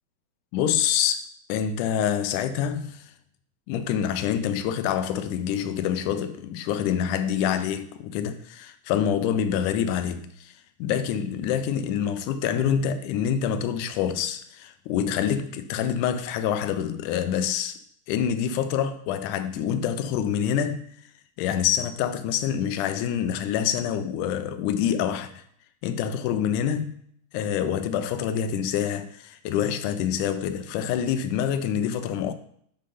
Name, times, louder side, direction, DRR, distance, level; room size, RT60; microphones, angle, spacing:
voice 1, 0.5-1.2 1.5-3.1 3.7-10.5 10.8-17.8 18.1-20.9 21.4-25.4 25.8-27.0 27.3-32.3, left 9 dB, 85° left, 2.1 m, -26 dB
5.4 x 5.4 x 5.4 m
omnidirectional pair, 3.6 m